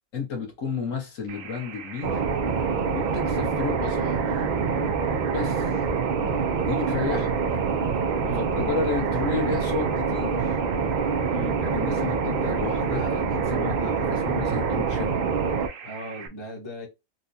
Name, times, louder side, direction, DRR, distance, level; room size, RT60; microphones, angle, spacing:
voice 1, 0.1-2.2 2.9-4.5 5.3-5.8 6.7-7.3 8.3-10.6 11.6-15.3, left 4 dB, 60° left, 1.5 m, -32 dB
sound 1, 1.3-16.3, right 8 dB, 65° right, 1.0 m, -41 dB
sound 2, 2.0-15.7, right 5 dB, 90° right, 0.4 m, -25 dB
voice 2, 15.8-16.9, left 1 dB, 20° left, 0.9 m, -37 dB
4.2 x 2.3 x 2.6 m
omnidirectional pair, 1.5 m